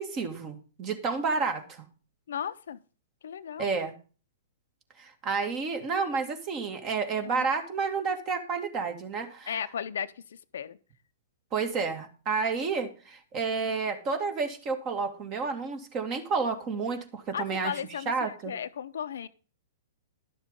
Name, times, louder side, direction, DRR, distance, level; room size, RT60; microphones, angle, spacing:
voice 1, 0.0-1.9 3.6-3.9 5.0-9.5 11.5-17.8 18.1-18.5, right 5 dB, 35° right, 6 dB, 2.2 m, -30 dB
voice 2, 2.3-2.8 3.2-3.7 7.2-7.4 9.5-10.8 17.3-19.3, left 8 dB, 70° left, 11 dB, 0.7 m, -35 dB
12.0 x 7.1 x 5.3 m, 0.36 s
hypercardioid pair, 115°, 0 cm